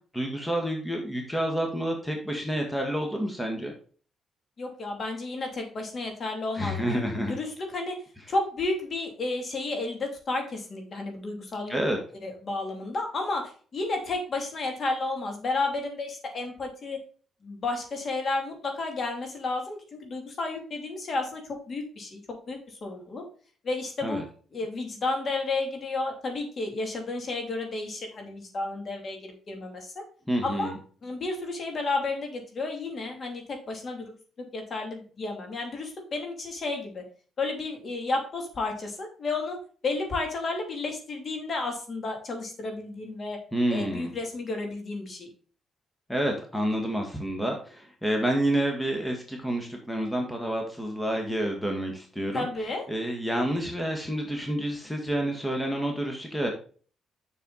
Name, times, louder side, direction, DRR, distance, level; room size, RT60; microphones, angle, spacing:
voice 1, 0.1-3.7 6.5-7.4 11.7-12.0 24.0-24.2 30.3-30.7 43.5-44.1 46.1-52.5 52.9-56.5, right 1 dB, 5° left, 2 dB, 1.8 m, -29 dB
voice 2, 4.6-8.0 8.3-11.8 12.2-17.0 17.4-23.2 23.6-24.2 24.5-30.0 30.4-30.7 31.0-34.1 34.4-37.0 37.4-39.6 39.8-43.4 43.7-45.3 52.3-52.8, left 3 dB, 45° left, 3 dB, 2.9 m, -32 dB
6.9 x 6.6 x 4.1 m, 0.42 s
cardioid pair, 90°, 0 cm